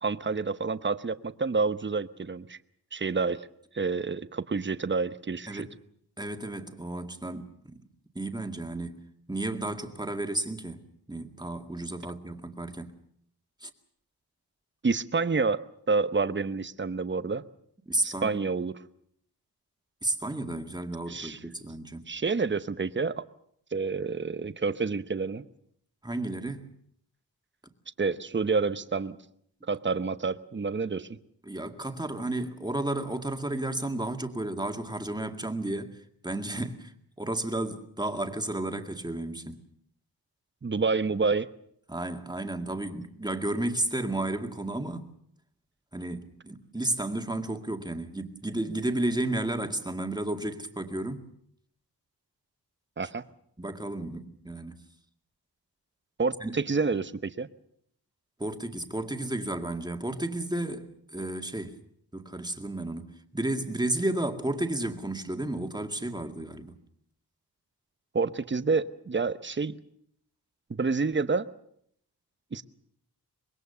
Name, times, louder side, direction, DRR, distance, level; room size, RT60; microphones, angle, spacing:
voice 1, 0.0-2.6 2.9-3.5 3.7-5.7 14.8-17.5 18.0-18.7 21.1-21.4 22.1-23.2 23.7-25.5 28.0-29.2 29.7-31.2 40.6-41.5 53.0-53.2 56.2-57.5 68.1-69.8 70.8-71.5 72.5-72.6, right 4 dB, 30° right, 0.9 m, -28 dB
voice 2, 5.5-5.8 6.2-7.8 8.1-9.0 9.3-13.0 13.6-13.7 17.9-18.4 20.0-22.0 26.0-26.7 31.4-36.9 37.2-39.6 41.9-45.1 45.9-51.3 53.6-54.8 56.4-56.6 58.4-61.8 62.1-66.8, right 1 dB, 10° right, 2.1 m, -32 dB
25.0 x 21.5 x 6.8 m
wide cardioid pair, 95°, 40 cm